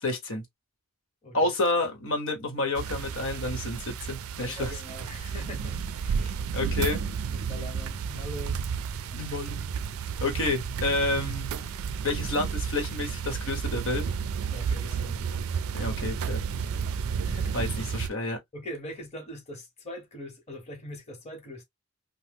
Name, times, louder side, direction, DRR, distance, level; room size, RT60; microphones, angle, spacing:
voice 1, 0.0-0.4 1.3-4.7 6.5-7.0 9.1-9.7 10.2-11.5 12.0-14.1 15.7-16.4 17.5-18.4, left 2 dB, 65° left, 1.1 m, -29 dB
sound 1, 2.7-18.1, right 6 dB, 85° right, 0.4 m, -32 dB
voice 2, 4.4-6.4 7.3-8.6 14.5-15.3 16.6-17.6 18.5-21.6, equal, 30° left, 1.2 m, -42 dB
2.9 x 2.2 x 3.4 m
head